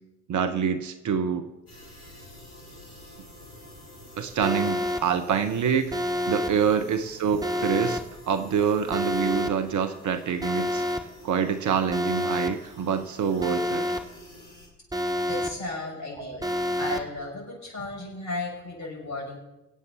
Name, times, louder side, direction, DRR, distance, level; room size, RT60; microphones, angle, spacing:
voice 1, 0.3-1.4 4.2-5.9 6.3-8.0 8.3-10.8 11.2-13.8 16.2-16.4, right 7 dB, 45° right, 9 dB, 1.0 m, -26 dB
sound 1, 1.7-14.7, left 1 dB, 75° left, 3.1 m, -49 dB
Alarm, 4.4-5.0 5.9-6.5 7.4-8.0 8.9-9.5 10.4-11.0 11.9-12.5 13.4-14.0 14.9-15.5 16.4-17.0, left 1 dB, 10° right, 1.4 m, -28 dB
voice 2, 15.3-16.5 16.8-19.4, left 2 dB, 40° left, -2 dB, 6.3 m, -34 dB
24.0 x 8.3 x 4.1 m, 1.0 s
figure-of-eight pair, 50°, 43 cm